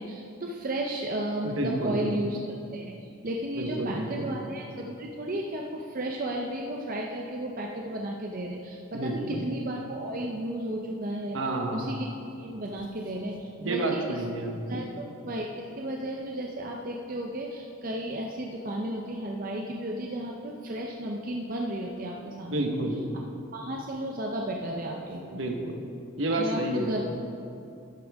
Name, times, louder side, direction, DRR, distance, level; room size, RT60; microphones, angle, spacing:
voice 1, 0.0-2.9 3.2-11.4 11.7-12.1 12.4-14.2 14.7-22.6 23.5-25.4 26.3-27.0, right 1 dB, 45° right, 0 dB, 0.6 m, -33 dB
voice 2, 1.4-2.0 3.6-4.3 8.9-9.4 11.3-11.8 13.6-14.9 22.5-23.0 25.3-25.7 26.2-27.0, right 1 dB, 70° right, 2 dB, 1.2 m, -30 dB
11.5 x 9.7 x 3.5 m, 2.6 s
head